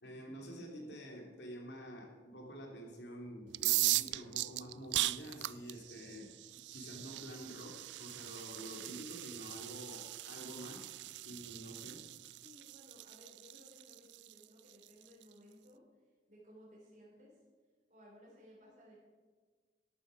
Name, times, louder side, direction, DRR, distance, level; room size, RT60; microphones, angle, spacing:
voice 1, 0.0-6.3 6.6-10.9 11.2-12.1, equal, 80° left, 1 dB, 2.9 m, -48 dB
sound 1, 3.5-15.2, right 17 dB, 80° right, 0.3 m, -39 dB
voice 2, 12.3-15.8 16.3-17.3 17.9-19.0, equal, 40° right, -4 dB, 3.8 m, -59 dB
13.0 x 12.0 x 5.1 m, 1.5 s
head